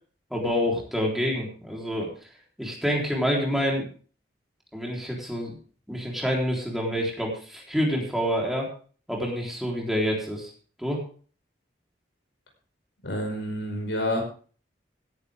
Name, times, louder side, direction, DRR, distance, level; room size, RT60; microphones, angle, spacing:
voice 1, 0.3-2.1 2.6-3.9 4.7-5.6 5.9-8.7 9.1-10.5 10.8-11.0, equal, ahead, -2 dB, 3.8 m, -27 dB
voice 2, 13.0-14.2, left 1 dB, 90° left, 2 dB, 5.1 m, -28 dB
17.0 x 11.0 x 3.6 m, 0.41 s
head